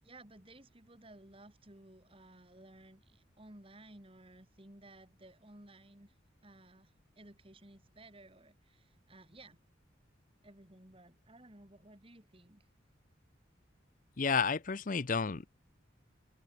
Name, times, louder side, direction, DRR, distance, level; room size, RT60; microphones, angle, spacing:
voice 1, 0.0-6.1 6.4-9.6 10.4-12.6, right 1 dB, 30° right, 2.5 m, -57 dB
voice 2, 14.2-15.5, left 5 dB, 40° left, 0.6 m, -31 dB
open air
head